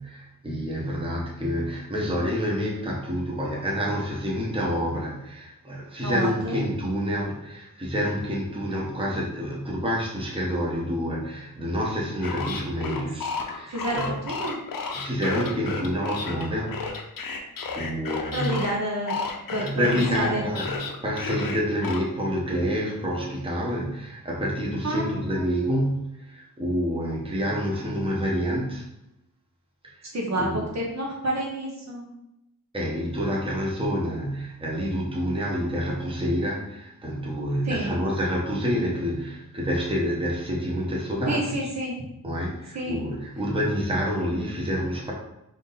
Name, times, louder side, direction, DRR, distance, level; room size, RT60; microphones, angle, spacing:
voice 1, 0.0-14.2 14.9-16.8 17.7-18.6 19.5-20.8 21.0-28.9 29.8-30.1 30.4-30.7 32.7-41.4 42.2-45.1, equal, 15° right, -3 dB, 0.9 m, -28 dB
voice 2, 6.0-6.6 13.7-14.6 18.3-19.2 19.5-19.8 20.1-20.4 24.8-25.5 30.1-32.1 37.6-37.9 41.3-41.9 42.7-43.0, right 1 dB, 50° right, -2 dB, 0.8 m, -29 dB
sound 1, 12.2-18.7 19.1-22.0, left 4 dB, 75° left, 0.7 m, -32 dB
3.6 x 2.7 x 3.9 m, 0.87 s
wide cardioid pair, 105°, 34 cm